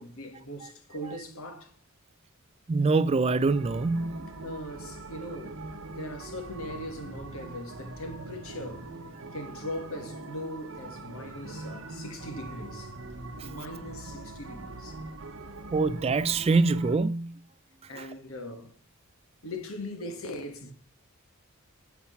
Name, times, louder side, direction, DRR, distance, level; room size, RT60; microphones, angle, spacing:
voice 1, 0.0-1.7 4.4-5.6 5.9-8.9 9.3-12.9 13.4-15.0 17.9-18.7 19.4-20.7, left 1 dB, 65° left, 1.6 m, -40 dB
voice 2, 2.7-4.3 13.4-13.5 15.7-17.3 18.0-18.1, right 3 dB, 25° right, 0.3 m, -25 dB
sound 1, 3.5-17.0, right 2 dB, 60° right, 1.0 m, -42 dB
7.2 x 5.9 x 5.6 m
head